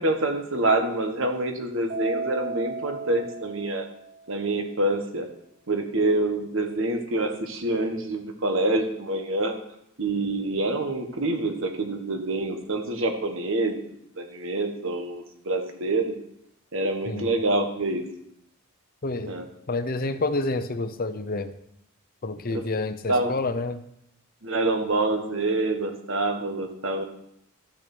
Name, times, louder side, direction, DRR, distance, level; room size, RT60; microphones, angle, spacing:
voice 1, 0.0-3.8 4.3-5.3 5.7-9.5 10.0-13.7 14.2-16.1 16.7-18.1 19.3-19.4 22.5-22.6 23.1-23.3 24.4-27.0, right 2 dB, 60° right, 5 dB, 1.6 m, -26 dB
Keyboard (musical), 1.9-4.4, right 4 dB, 35° right, 0.9 m, -35 dB
voice 2, 19.0-19.3 19.7-21.5 22.2-23.8, left 2 dB, 40° left, 11 dB, 0.7 m, -28 dB
13.0 x 6.2 x 6.1 m, 0.76 s
head